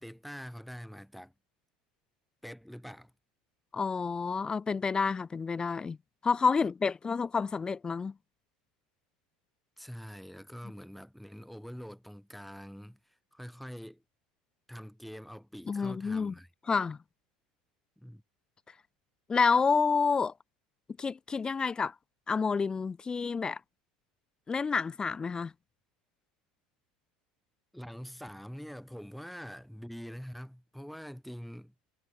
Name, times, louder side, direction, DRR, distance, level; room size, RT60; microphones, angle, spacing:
voice 1, 0.0-1.3 2.4-3.1 9.8-14.0 14.7-16.5 18.0-18.2 27.7-31.7, equal, ahead, 3.4 m, -45 dB
voice 2, 3.7-6.0 6.2-8.1 15.7-16.3 16.7-17.0 19.3-20.3 21.0-21.9 22.3-23.6 24.5-25.5, left 5 dB, 20° left, 0.4 m, -29 dB
hypercardioid pair, 75°, 4 cm